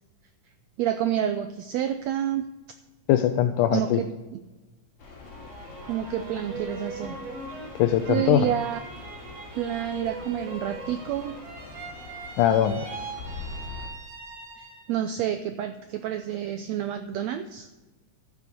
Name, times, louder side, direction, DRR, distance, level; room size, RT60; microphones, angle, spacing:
voice 1, 0.8-2.5 3.7-4.4 5.9-7.2 8.1-8.8 9.6-11.4 14.6-17.7, right 10 dB, 80° right, 9 dB, 1.6 m, -29 dB
voice 2, 3.1-4.0 7.8-8.5 12.4-12.9, left 11 dB, 80° left, 7 dB, 2.1 m, -21 dB
sound 1, 5.0-13.9, left 3 dB, 50° left, 3.6 m, -44 dB
sound 2, 5.2-15.0 15.4-16.1, right 2 dB, 50° right, 3.0 m, -41 dB
13.0 x 8.3 x 6.8 m, 1.1 s
omnidirectional pair, 3.7 m